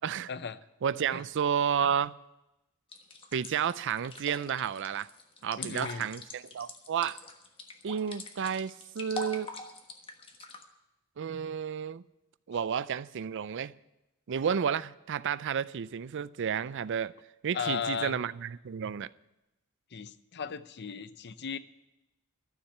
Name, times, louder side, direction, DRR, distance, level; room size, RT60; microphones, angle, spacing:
voice 1, 0.3-0.6 1.1-1.2 5.6-6.1 17.5-18.2 19.9-21.6, left 6 dB, 55° left, 0.6 m, -36 dB
voice 2, 0.8-2.1 3.3-5.1 5.4-7.2 7.8-9.5 11.2-12.0 12.5-13.7 14.3-17.1 17.4-19.1, right 7 dB, 60° right, 0.4 m, -31 dB
sound 1, 2.9-10.6, left 2 dB, 25° left, 1.3 m, -43 dB
12.5 x 7.2 x 10.0 m
head